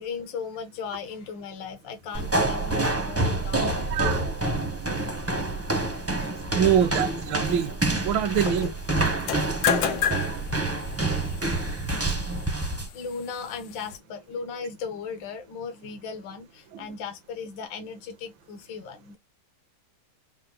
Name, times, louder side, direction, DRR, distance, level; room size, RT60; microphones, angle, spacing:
voice 1, 0.0-3.9 6.0-6.2 8.5-8.7 9.6-9.9 12.9-19.2, left 5 dB, 70° left, 1.7 m, -37 dB
sound 1, 2.1-12.9, right 2 dB, 15° right, 0.6 m, -27 dB
voice 2, 3.9-4.2 6.5-7.8 8.0-8.7 10.3-10.4 12.0-12.2 16.7-16.9, right 9 dB, 75° right, 1.5 m, -25 dB
sound 2, 9.1-14.0, left 8 dB, 85° left, 1.8 m, -31 dB
5.6 x 2.1 x 3.7 m
omnidirectional pair, 2.2 m